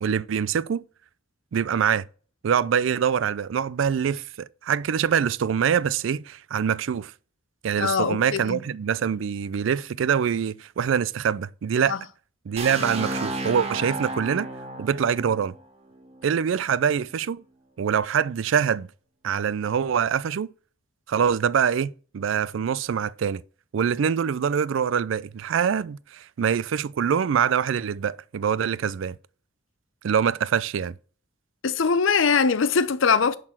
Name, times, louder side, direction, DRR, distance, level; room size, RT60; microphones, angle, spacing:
voice 1, 0.0-0.8 1.5-2.1 2.4-7.1 7.6-12.0 12.5-14.5 14.8-15.5 16.2-17.4 17.8-18.9 19.2-20.5 21.1-23.4 23.7-29.2 30.0-31.0, right 7 dB, 75° right, 0.4 m, -24 dB
voice 2, 7.8-8.6 11.9-12.0 31.6-33.4, left 5 dB, 80° left, 0.6 m, -22 dB
sound 1, 12.6-16.4, right 2 dB, 35° right, 1.3 m, -33 dB
10.5 x 4.1 x 5.9 m
head